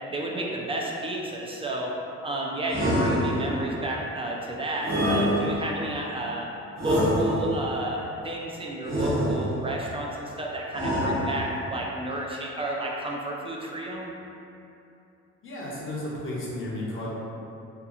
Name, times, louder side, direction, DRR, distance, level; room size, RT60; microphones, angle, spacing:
voice 1, 0.1-1.9 2.2-6.5 6.8-14.1, right 1 dB, 20° right, -2 dB, 0.3 m, -31 dB
sound 1, 2.7-3.7 4.8-5.9 6.8-7.7 8.9-9.8 10.7-11.7, equal, 60° right, 1.0 m, -26 dB
voice 2, 15.4-17.1, left 1 dB, 45° left, -6 dB, 0.6 m, -33 dB
2.8 x 2.3 x 2.5 m, 2.8 s
cardioid pair, 90°, 30 cm